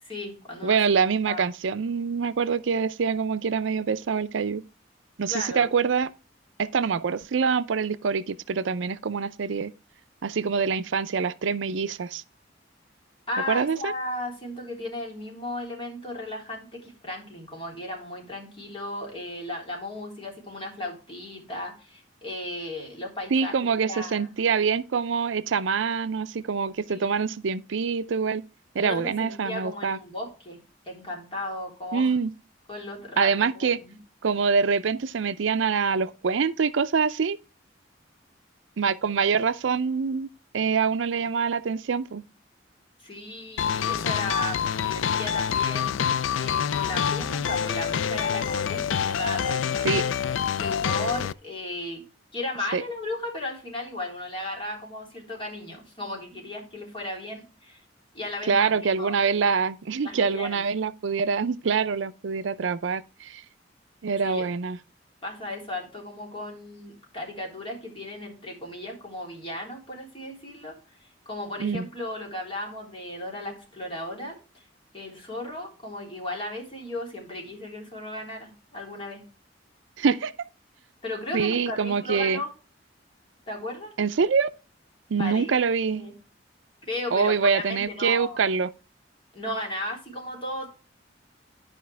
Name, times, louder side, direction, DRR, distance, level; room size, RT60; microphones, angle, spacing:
voice 1, 0.0-1.5 5.3-5.7 13.3-23.5 23.8-24.3 26.9-27.2 28.8-30.6 30.9-32.1 32.7-34.0 43.0-46.0 46.4-50.1 50.5-52.0 52.3-57.8 58.1-59.2 60.0-60.6 64.2-64.5 65.2-74.7 74.9-79.2 81.0-82.5 83.5-83.9 85.2-85.5 85.8-86.2 86.8-88.4 89.3-90.7, left 1 dB, 30° left, 3.5 m, -35 dB
voice 2, 0.6-4.6 5.2-6.1 6.6-9.7 10.2-12.2 13.5-13.9 23.3-28.4 28.7-30.0 31.9-32.3 33.2-33.8 34.2-37.4 38.8-40.3 40.5-42.2 49.8-50.0 52.7-52.8 58.5-63.4 64.0-64.8 71.6-71.9 80.0-80.3 81.3-82.4 84.0-84.5 85.1-86.1 87.1-88.7, right 5 dB, 75° right, 0.5 m, -25 dB
sound 1, 43.6-51.3, left 8 dB, 90° left, 0.4 m, -26 dB
11.5 x 5.1 x 3.3 m
head